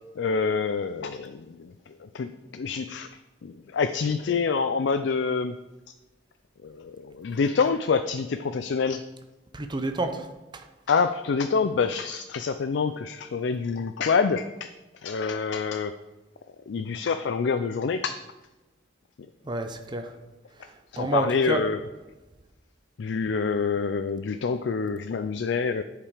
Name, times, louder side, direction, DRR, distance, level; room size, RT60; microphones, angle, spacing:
voice 1, 0.2-5.6 6.6-9.0 10.9-15.9 16.7-18.2 20.9-21.8 23.0-25.8, left 5 dB, 70° left, 9 dB, 0.4 m, -27 dB
voice 2, 9.5-10.3 10.5-10.7 19.4-20.1 20.6-21.6, right 2 dB, 25° right, 6 dB, 0.6 m, -29 dB
10.5 x 5.0 x 4.9 m, 1.1 s
head